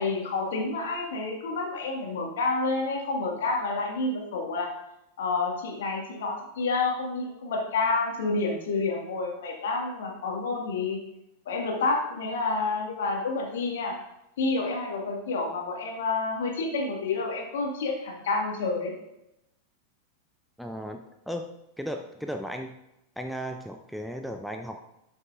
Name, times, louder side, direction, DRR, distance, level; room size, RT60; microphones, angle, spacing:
voice 1, 0.0-4.7 5.2-11.0 11.5-13.9 14.4-18.9, left 3 dB, 60° left, 0 dB, 1.8 m, -29 dB
voice 2, 20.6-21.5 21.8-22.7 23.2-24.8, equal, ahead, 5 dB, 0.5 m, -35 dB
12.0 x 6.1 x 2.5 m, 0.87 s
figure-of-eight pair, 90°, 0 cm